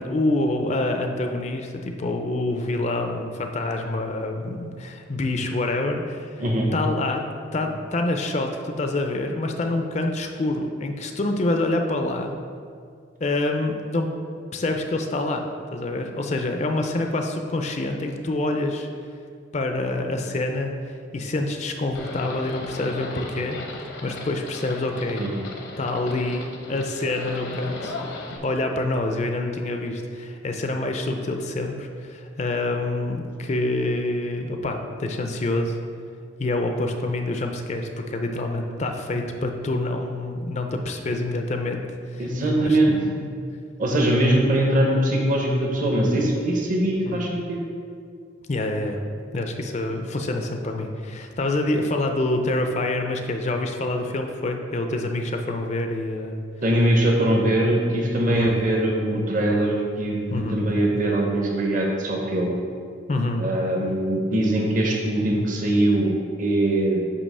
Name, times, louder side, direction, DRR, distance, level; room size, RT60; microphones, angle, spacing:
voice 1, 0.0-6.4 6.7-7.2 7.5-12.3 13.2-14.1 14.5-15.4 15.7-18.9 19.5-20.7 21.1-23.6 24.0-25.2 25.8-28.0 28.4-35.8 36.4-41.8 42.1-42.3 42.5-43.3 47.1-47.3 48.5-49.0 49.3-56.4 58.3-58.5 60.3-60.6 63.1-63.5, left 2 dB, 35° left, 4 dB, 0.4 m, -26 dB
Livestock farm animals working animals, 21.9-28.4, left 2 dB, 75° left, 0.8 m, -37 dB
voice 2, 42.2-42.9 43.8-47.6 56.6-62.6 63.4-67.1, right 1 dB, 45° right, -1 dB, 0.8 m, -22 dB
8.5 x 2.9 x 5.4 m, 2.2 s
head